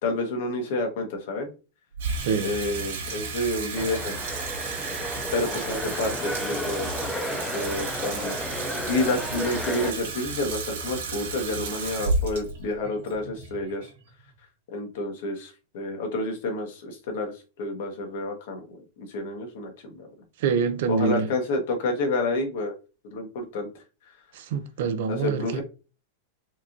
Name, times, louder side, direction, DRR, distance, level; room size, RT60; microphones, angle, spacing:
voice 1, 0.0-1.5 2.4-4.2 5.3-6.9 7.2-8.4 8.9-13.9 14.7-17.3 17.6-20.1 20.9-22.7 23.1-23.7 25.1-25.6, left 2 dB, 60° left, 1.3 m, -29 dB
Water tap faucet / Sink (filling or washing), 1.9-14.3, right 4 dB, 75° right, 1.9 m, -33 dB
sound 1, 3.8-9.9, left 1 dB, 5° left, 0.4 m, -33 dB
voice 2, 20.4-21.3 24.3-25.6, right 5 dB, 60° right, 0.6 m, -26 dB
4.4 x 2.9 x 2.6 m
supercardioid pair, 165°, 0 cm